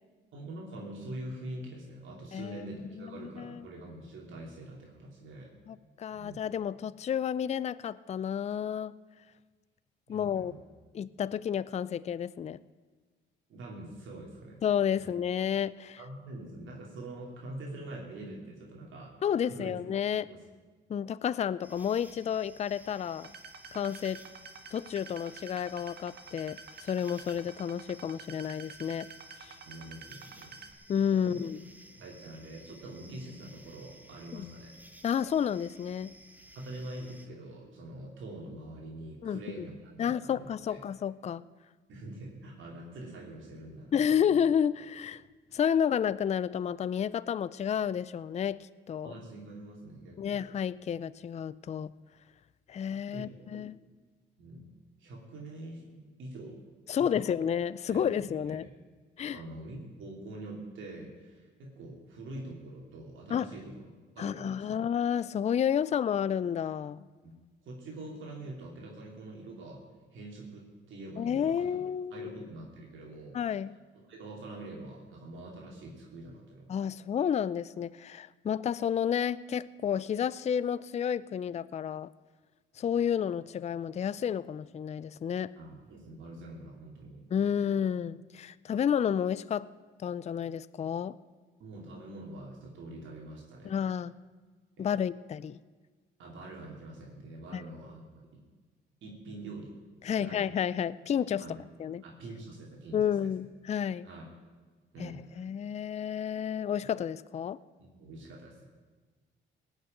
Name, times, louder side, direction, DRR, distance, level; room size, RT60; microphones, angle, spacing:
voice 1, 0.3-5.5 6.1-6.4 10.1-10.6 13.5-14.6 15.0-15.1 16.0-19.8 20.2-20.4 29.7-30.5 31.1-31.4 31.9-34.8 36.5-40.8 41.9-44.2 49.0-50.4 53.1-53.6 54.4-54.7 55.0-55.9 56.2-56.6 57.0-57.3 57.9-58.7 59.3-64.8 67.2-67.3 67.6-69.8 70.1-71.8 72.1-73.4 74.1-76.8 85.6-87.2 91.6-93.8 94.8-95.0 96.2-98.4 99.0-99.7 100.0-100.5 101.4-101.6 102.0-103.3 104.0-104.2 104.9-105.4 107.8-108.6, right 1 dB, 75° right, -2 dB, 2.8 m, -45 dB
voice 2, 2.3-2.6 3.0-3.6 5.7-8.9 10.1-10.5 10.9-12.6 14.6-16.0 19.2-20.3 20.9-23.3 23.7-24.2 24.7-29.1 29.4-29.5 30.9-31.6 34.3-34.5 35.0-36.1 39.2-39.7 40.0-41.4 43.9-45.2 45.5-49.1 50.2-51.9 52.7-53.8 56.9-58.6 59.2-59.4 63.3-63.5 64.2-67.1 71.2-72.3 73.3-73.7 76.7-82.1 82.8-85.5 87.3-89.7 90.0-91.2 93.6-94.1 94.8-95.6 97.5-97.6 100.0-101.4 101.8-102.0 102.9-104.1 105.0-107.6, left 8 dB, 35° left, 18 dB, 0.4 m, -31 dB
sound 1, 21.6-37.3, right 1 dB, 10° right, 1.2 m, -55 dB
sound 2, 23.2-30.7, right 5 dB, 55° right, 1.4 m, -49 dB
17.5 x 6.6 x 9.1 m, 1.4 s
cardioid pair, 90°, 20 cm